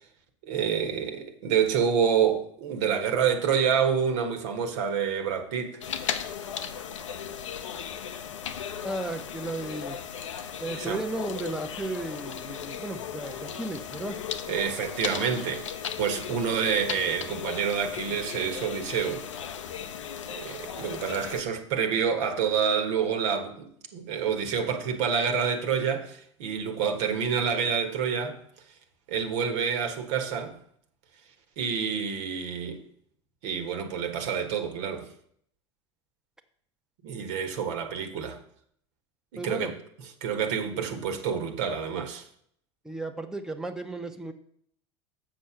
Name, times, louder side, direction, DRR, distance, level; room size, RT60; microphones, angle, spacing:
voice 1, 0.4-5.8 10.7-11.0 14.5-15.7 16.0-19.2 20.3-28.4 29.1-30.5 31.6-32.8 33.4-35.1 37.0-38.4 39.3-39.7 40.2-42.2, right 7 dB, 70° right, 1.4 m, -28 dB
sound 1, 5.8-21.4, left 8 dB, 90° left, 0.7 m, -36 dB
voice 2, 8.8-10.0 10.6-14.2 39.4-39.7 42.8-44.3, right 2 dB, 5° right, 0.8 m, -34 dB
7.4 x 6.2 x 5.8 m
hypercardioid pair, 90°, 15 cm